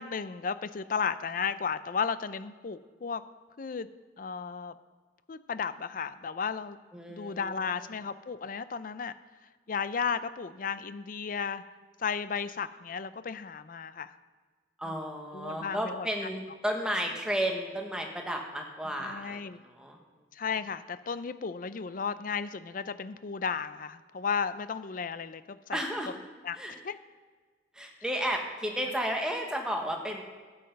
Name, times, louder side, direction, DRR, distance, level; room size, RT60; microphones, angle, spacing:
voice 1, 0.0-3.2 3.6-3.9 4.2-4.7 5.3-6.8 7.1-9.1 9.7-11.6 12.0-14.1 14.8-14.9 15.3-16.1 19.0-19.6 20.3-25.8 26.4-26.6 26.8-27.0, left 6 dB, 50° left, 13 dB, 0.5 m, -34 dB
voice 2, 6.9-7.8 14.8-20.0 25.7-26.1 26.5-26.8 27.7-30.2, equal, 5° right, 2 dB, 1.2 m, -33 dB
12.5 x 8.0 x 5.2 m, 1.4 s
head